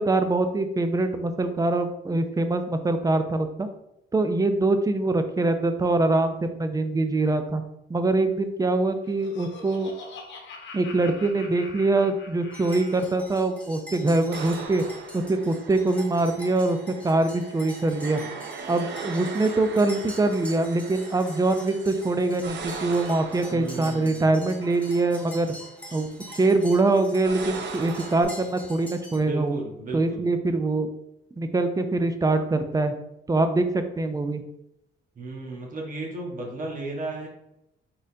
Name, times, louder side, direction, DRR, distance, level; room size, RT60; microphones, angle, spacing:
voice 1, 0.0-3.7 4.1-7.6 7.9-9.9 10.7-14.8 15.1-16.8 17.0-18.2 18.7-25.5 25.9-26.1 26.4-29.6 29.9-30.9 31.4-32.9 33.3-34.4, right 2 dB, 20° right, 8 dB, 0.4 m, -24 dB
Laughter, 8.7-13.2, left 3 dB, 70° left, 0.9 m, -44 dB
sound 1, 12.5-29.2, equal, 5° left, 1.3 m, -45 dB
sound 2, 14.3-28.2, right 5 dB, 60° right, 0.6 m, -40 dB
voice 2, 23.5-24.4 29.1-30.3 35.1-37.3, right 2 dB, 40° right, -1 dB, 1.3 m, -35 dB
4.1 x 3.7 x 2.6 m, 0.82 s
cardioid pair, 90°, 20 cm